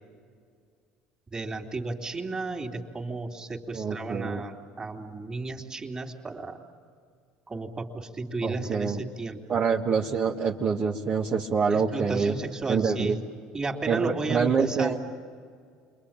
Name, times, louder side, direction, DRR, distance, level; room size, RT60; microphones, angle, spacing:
voice 1, 1.3-6.6 7.5-9.6 11.7-13.2 13.5-14.9, right 3 dB, 25° right, 2 dB, 3.2 m, -33 dB
voice 2, 3.7-4.5 8.4-9.0 9.5-12.3 12.7-13.2 13.9-15.0, right 5 dB, 45° right, -2 dB, 1.8 m, -26 dB
29.5 x 23.0 x 8.9 m, 2.1 s
supercardioid pair, 90°, 3 cm